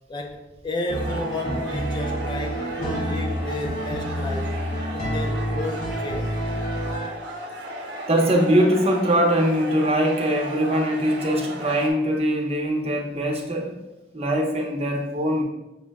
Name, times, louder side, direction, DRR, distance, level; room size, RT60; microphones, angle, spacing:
voice 1, 0.1-4.6 4.9-6.3, left 2 dB, 25° left, 0.3 m, -32 dB
sound 1, 0.9-7.1, equal, 45° left, 0.7 m, -28 dB
sound 2, 0.9-11.9, right 1 dB, 80° right, 0.8 m, -35 dB
voice 2, 8.1-13.8 14.1-15.4, equal, 35° right, 0.7 m, -22 dB
6.1 x 2.1 x 3.4 m
head